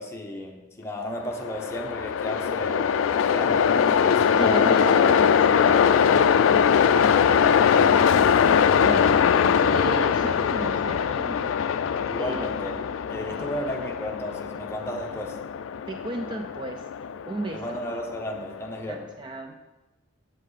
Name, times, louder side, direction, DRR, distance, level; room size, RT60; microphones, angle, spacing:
voice 1, 0.0-5.0 5.6-6.5 12.0-12.8 13.1-15.4 17.5-19.1, left 1 dB, 15° left, 1 dB, 0.8 m, -34 dB
Train, 1.3-18.5, left 7 dB, 75° left, 0.3 m, -22 dB
voice 2, 4.4-5.9 7.4-8.2 8.8-11.6 11.8-12.5 13.3-13.5 15.9-16.9 17.3-17.8 18.9-19.6, right 2 dB, 25° right, 4 dB, 0.3 m, -36 dB
7.6 x 7.5 x 3.2 m, 1.1 s
head